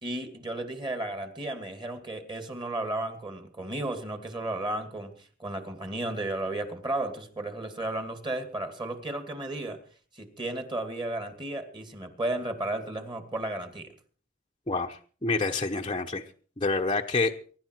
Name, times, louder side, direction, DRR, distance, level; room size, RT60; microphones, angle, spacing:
voice 1, 0.0-9.8 10.1-13.9, right 2 dB, 25° right, 7 dB, 2.3 m, -34 dB
voice 2, 14.7-16.2 16.6-17.3, left 3 dB, 25° left, 1 dB, 0.9 m, -27 dB
23.5 x 11.5 x 4.6 m, 0.43 s
head